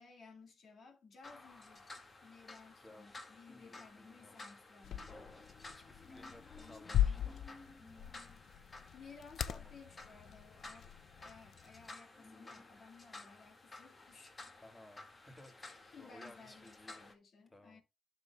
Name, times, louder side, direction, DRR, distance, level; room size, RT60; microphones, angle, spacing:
voice 1, 0.0-5.1 6.1-7.3 8.9-10.9 11.2-14.3 15.9-17.8, left 4 dB, 70° left, 2.3 m, -58 dB
sound 1, 1.2-17.1, left 2 dB, 35° left, 2.0 m, -54 dB
voice 2, 2.8-3.2 4.0-4.4 5.6-7.4 9.5-9.7 14.6-17.1 17.5-17.8, left 1 dB, 20° left, 2.5 m, -58 dB
sound 2, 4.8-11.9, left 11 dB, 85° left, 0.4 m, -40 dB
12.0 x 6.8 x 2.3 m
cardioid pair, 90°, 0 cm